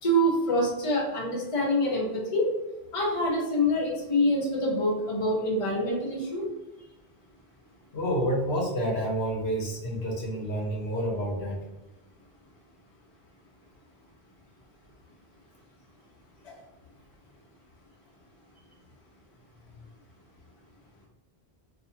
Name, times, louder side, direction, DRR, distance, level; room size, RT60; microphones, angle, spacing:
voice 1, 0.0-2.5 2.9-6.4, equal, 35° left, -4 dB, 0.7 m, -26 dB
voice 2, 7.9-11.6, equal, 70° left, -3 dB, 0.9 m, -29 dB
2.5 x 2.2 x 2.8 m, 1.0 s
omnidirectional pair, 1.1 m